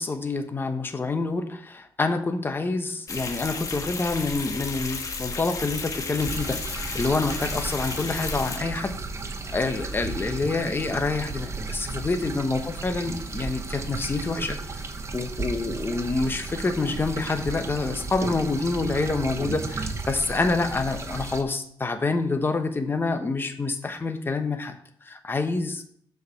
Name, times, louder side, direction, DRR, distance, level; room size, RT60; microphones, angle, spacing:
voice 1, 0.0-6.6 6.9-9.0 9.5-14.6 15.1-24.8 25.0-25.8, left 3 dB, 25° left, 6 dB, 1.1 m, -27 dB
sound 1, 3.1-8.6, left 4 dB, 40° left, 1.5 m, -33 dB
sound 2, 6.2-21.4, right 3 dB, 35° right, 1.0 m, -34 dB
7.0 x 5.1 x 6.5 m, 0.65 s
cardioid pair, 100°, 9 cm